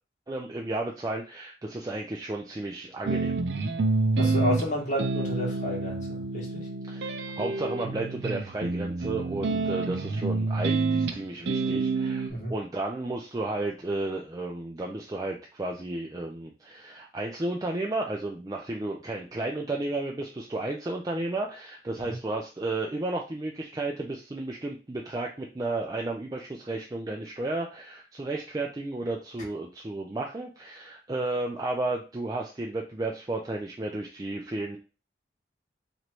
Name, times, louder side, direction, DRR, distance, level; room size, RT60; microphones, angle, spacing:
voice 1, 0.3-3.4 6.9-34.8, right 2 dB, 20° right, 0 dB, 0.4 m, -33 dB
sound 1, 3.1-12.3, right 3 dB, 75° right, 0.5 m, -28 dB
voice 2, 4.2-6.7 12.3-12.5 22.0-22.2, left 1 dB, 45° left, -2 dB, 1.5 m, -31 dB
3.1 x 2.6 x 4.4 m, 0.32 s
head